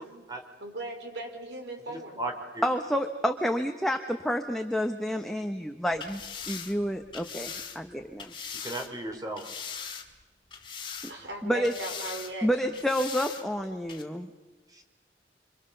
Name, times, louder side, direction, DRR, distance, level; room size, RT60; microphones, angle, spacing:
voice 1, 0.6-2.2 11.1-12.7 13.6-13.7, right 1 dB, 75° right, 4 dB, 4.5 m, -39 dB
voice 2, 1.9-2.6 8.5-9.5 14.7-14.8, right 2 dB, 20° right, 4 dB, 3.7 m, -36 dB
voice 3, 2.6-6.2 6.5-8.3 11.4-11.7 12.4-14.3, equal, ahead, 4 dB, 1.1 m, -29 dB
sound 1, 5.9-8.9 9.4-10.2 10.5-11.3 11.6-12.3 12.7-13.4 13.9-14.0, left 6 dB, 30° left, 2.1 m, -40 dB
27.0 x 25.5 x 6.7 m, 1.2 s
head